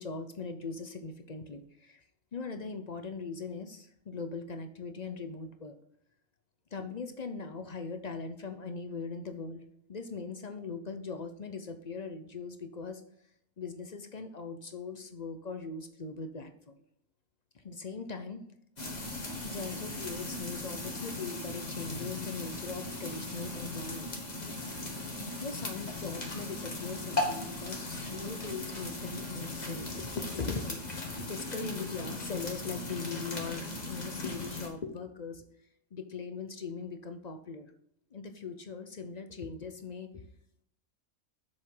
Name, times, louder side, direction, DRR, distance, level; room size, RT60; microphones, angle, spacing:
voice 1, 0.0-2.0 2.3-5.8 6.7-9.6 9.9-13.0 13.6-16.7 17.5-18.5 19.4-24.3 25.4-35.4 35.9-37.7 38.1-40.1, left 4 dB, 45° left, 8 dB, 0.5 m, -40 dB
sound 1, 18.8-34.7, left 2 dB, 30° left, 1.5 m, -38 dB
7.4 x 6.5 x 3.8 m, 0.71 s
omnidirectional pair, 1.5 m